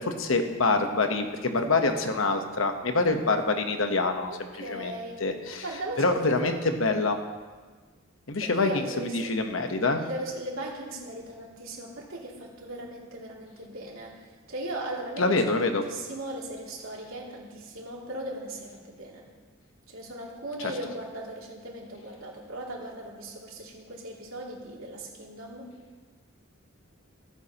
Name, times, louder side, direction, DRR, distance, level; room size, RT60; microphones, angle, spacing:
voice 1, 0.0-4.3 4.6-4.9 5.2-5.6 6.0-7.2 8.3-10.0 15.2-15.8 20.6-20.7, left 3 dB, 70° left, 5 dB, 1.1 m, -26 dB
voice 2, 4.3-5.2 5.6-6.6 8.4-9.3 10.0-14.2 14.5-19.2 19.9-25.7, right 1 dB, 85° right, -3 dB, 2.8 m, -38 dB
15.0 x 14.0 x 3.0 m, 1.4 s
head